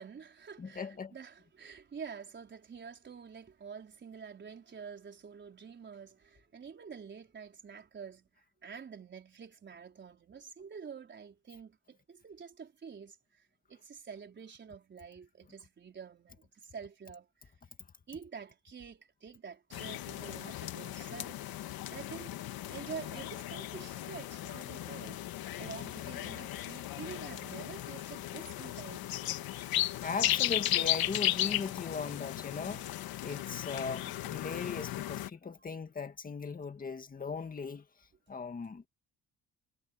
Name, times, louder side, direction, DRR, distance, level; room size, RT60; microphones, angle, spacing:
voice 1, 0.0-8.3 8.6-17.5 18.1-21.4 21.9-22.4 22.7-25.2 25.6-29.3 35.6-35.7 38.3-38.4, right 6 dB, 30° right, 4.5 m, -48 dB
voice 2, 0.6-1.1 30.0-32.8 33.2-37.8 38.3-38.9, left 5 dB, 25° left, 1.9 m, -38 dB
sound 1, 19.7-35.3, left 13 dB, 85° left, 1.9 m, -36 dB
cardioid pair, 160°, 35 cm